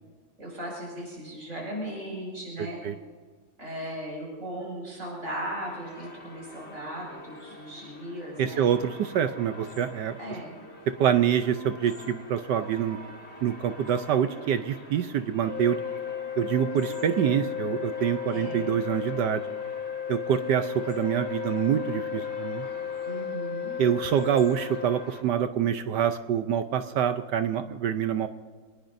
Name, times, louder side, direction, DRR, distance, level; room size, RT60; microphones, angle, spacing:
voice 1, 0.4-2.8 3.6-8.6 10.2-10.5 18.3-18.8 23.0-23.8, right 1 dB, 35° right, -3 dB, 6.4 m, -37 dB
voice 2, 2.6-2.9 8.4-10.2 11.0-13.0 13.4-15.8 16.4-19.4 20.1-22.7 23.8-28.3, right 9 dB, 70° right, 9 dB, 1.0 m, -26 dB
sound 1, 5.6-25.2, left 1 dB, 30° left, 2.0 m, -46 dB
sound 2, 15.4-25.1, left 8 dB, 70° left, 2.0 m, -34 dB
25.5 x 19.5 x 2.6 m, 1.6 s
omnidirectional pair, 2.4 m